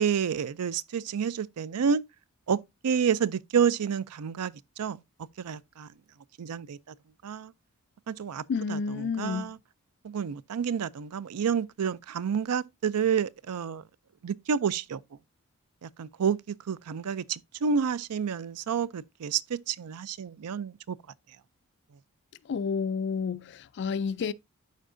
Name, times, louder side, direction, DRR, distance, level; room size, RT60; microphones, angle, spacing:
voice 1, 0.0-2.0 2.5-2.6 2.8-5.0 5.4-5.9 6.4-6.9 7.2-7.5 8.1-8.4 8.7-9.6 10.0-13.8 14.2-15.0 15.8-21.0, right 7 dB, 85° right, 0.4 m, -29 dB
voice 2, 8.5-9.5 22.5-24.3, left 5 dB, 50° left, 0.4 m, -30 dB
12.5 x 4.5 x 2.5 m
head